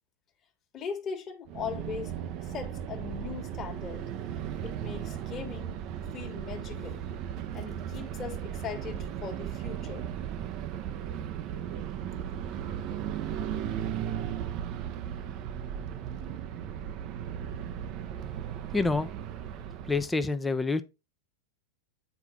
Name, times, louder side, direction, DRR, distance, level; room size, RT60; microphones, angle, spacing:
voice 1, 0.7-2.1 2.5-4.0 4.6-5.8 6.1-7.0 7.5-10.1, left 7 dB, 25° left, 1.6 m, -39 dB
sound 1, 1.5-20.2, right 9 dB, 40° right, 0.8 m, -36 dB
voice 2, 18.7-19.1 19.8-20.8, left 3 dB, 10° left, 0.8 m, -27 dB
8.3 x 4.6 x 3.7 m
figure-of-eight pair, 90°, 0 cm